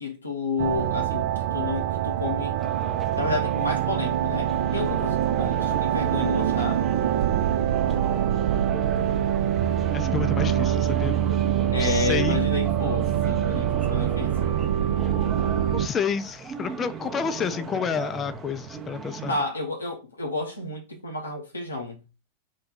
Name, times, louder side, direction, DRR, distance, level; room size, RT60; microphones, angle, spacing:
voice 1, 0.0-2.6 3.2-6.9 11.7-14.5 19.3-22.0, left 3 dB, 80° left, 0.8 m, -31 dB
sound 1, 0.6-15.9, right 10 dB, 55° right, 0.4 m, -24 dB
sound 2, 2.6-19.5, right 4 dB, 20° right, 0.7 m, -38 dB
voice 2, 9.9-11.3 11.8-12.4 15.7-19.3, left 6 dB, 25° left, 0.4 m, -29 dB
3.1 x 2.2 x 4.2 m
figure-of-eight pair, 90°, 0 cm